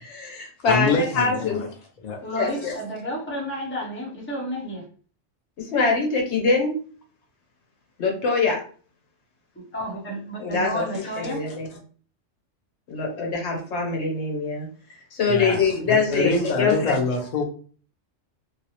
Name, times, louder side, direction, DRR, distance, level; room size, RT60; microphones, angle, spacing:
voice 1, 0.0-1.7 2.3-2.8 5.6-6.7 8.0-8.6 10.4-11.7 12.9-14.7 15.1-17.0, left 4 dB, 65° left, 0 dB, 1.0 m, -24 dB
voice 2, 0.7-1.6 2.0-2.2 15.3-15.6 15.9-17.4, left 3 dB, 85° left, 2 dB, 0.3 m, -25 dB
voice 3, 2.2-4.9 9.5-11.6, equal, 10° left, -3 dB, 0.6 m, -31 dB
2.6 x 2.0 x 2.8 m, 0.42 s
omnidirectional pair, 1.3 m